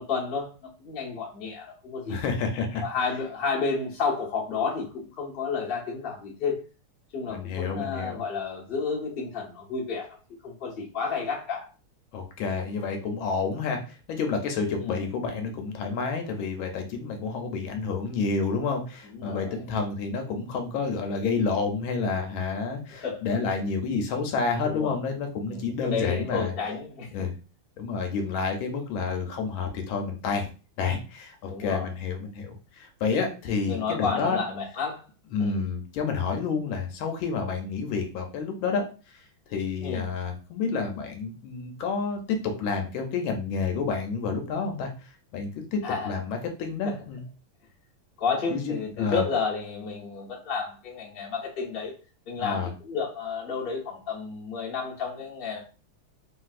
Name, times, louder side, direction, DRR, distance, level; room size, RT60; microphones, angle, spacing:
voice 1, 0.0-2.2 2.8-6.6 7.1-10.2 10.4-11.7 14.8-15.1 19.1-19.6 22.9-23.2 24.6-24.9 25.4-27.1 31.4-31.9 33.7-35.0 35.4-35.6 39.8-40.0 45.8-46.1 46.8-46.9 48.2-51.9 52.3-55.6, left 5 dB, 50° left, -2 dB, 0.6 m, -31 dB
voice 2, 2.1-2.8 7.3-8.2 12.1-26.5 27.1-27.3 27.8-30.4 30.8-34.4 35.3-39.2 39.5-45.8 46.0-47.2 48.5-49.2 52.4-52.7, left 4 dB, 75° left, 4 dB, 1.3 m, -29 dB
3.4 x 2.6 x 2.4 m, 0.35 s
omnidirectional pair, 2.3 m